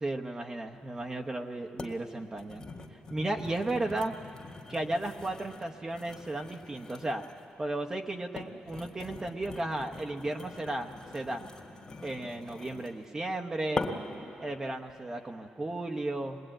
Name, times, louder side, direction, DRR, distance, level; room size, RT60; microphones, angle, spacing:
voice 1, 0.0-2.6 3.1-4.2 4.7-7.2 7.6-11.4 12.0-13.9 14.4-16.4, right 2 dB, 20° right, 2 dB, 0.9 m, -34 dB
sound 1, 1.0-1.1 1.8-2.0 2.3-7.5 8.1-13.0 13.8-14.2 14.7-15.0, left 3 dB, 25° left, 1.9 m, -42 dB
21.5 x 21.0 x 9.0 m, 2.6 s
cardioid pair, 140°, 3 cm